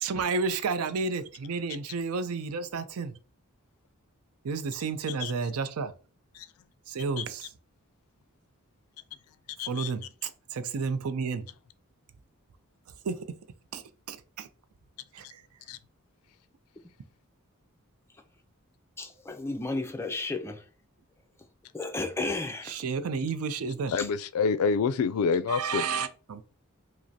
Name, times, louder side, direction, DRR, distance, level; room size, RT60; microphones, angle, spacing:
voice 1, 0.0-3.2 4.4-5.9 6.9-7.5 9.7-11.4 13.0-13.4 13.7-14.5 15.1-15.4 22.6-23.9 25.5-26.4, right 4 dB, 75° right, 0.4 m, -31 dB
voice 2, 9.6-9.9 15.7-15.8 23.9-25.9, left 5 dB, 80° left, 0.3 m, -27 dB
voice 3, 19.0-20.6 21.7-22.8 24.0-24.1, left 2 dB, 10° left, 0.4 m, -33 dB
4.9 x 2.0 x 2.7 m
head